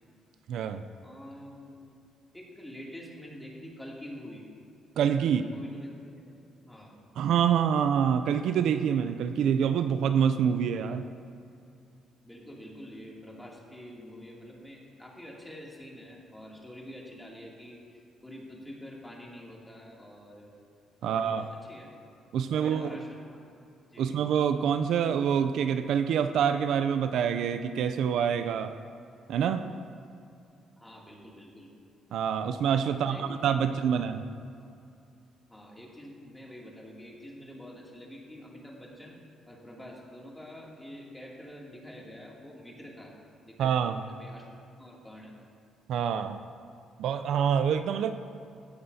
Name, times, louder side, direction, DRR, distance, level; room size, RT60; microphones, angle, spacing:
voice 1, 0.5-0.8 5.0-5.4 7.2-11.0 21.0-21.5 22.3-22.9 24.0-28.8 29.3-29.7 32.1-34.2 43.6-44.0 45.9-46.4 47.0-48.1, right 8 dB, 75° right, 9 dB, 0.4 m, -26 dB
voice 2, 1.0-1.8 2.3-4.4 5.2-6.3 6.6-6.9 12.2-20.7 21.0-21.9 22.5-23.5 23.9-24.2 30.8-31.7 32.9-34.0 35.5-39.2 39.5-43.1 43.4-45.5, equal, 10° left, -3 dB, 2.6 m, -46 dB
16.5 x 9.9 x 2.8 m, 2.6 s
cardioid pair, 90°, 0 cm